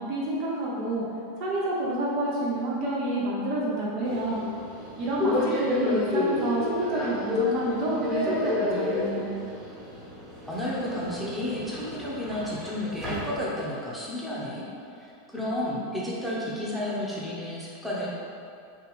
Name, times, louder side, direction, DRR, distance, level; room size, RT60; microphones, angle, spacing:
voice 1, 0.1-1.0 1.4-4.4 5.0-9.3, right 1 dB, 50° right, -5 dB, 0.6 m, -28 dB
Subway metro underground, 4.1-13.8, left 2 dB, 25° right, 1.3 m, -31 dB
voice 2, 10.4-14.6 14.9-18.1, left 1 dB, ahead, -8 dB, 0.8 m, -32 dB
3.4 x 2.4 x 3.2 m, 2.5 s
figure-of-eight pair, 85°, 0 cm